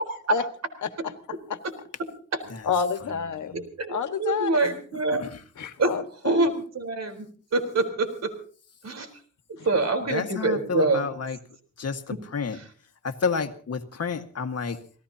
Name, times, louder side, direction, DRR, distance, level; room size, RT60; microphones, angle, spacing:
voice 1, 2.6-3.6 3.9-4.8 5.6-6.5 9.6-9.9, left 6 dB, 75° left, 8 dB, 1.6 m, -29 dB
voice 2, 3.8-5.2 5.8-5.9 6.2-7.2 7.5-8.3 8.8-9.1 9.6-11.2 12.1-12.2 12.5-12.7, right 2 dB, 60° right, 7 dB, 4.0 m, -25 dB
voice 3, 10.1-11.4 11.8-12.6 13.0-14.8, left 5 dB, 55° left, 6 dB, 1.7 m, -30 dB
27.5 x 18.5 x 2.8 m, 0.42 s
cardioid pair, 90°, 30 cm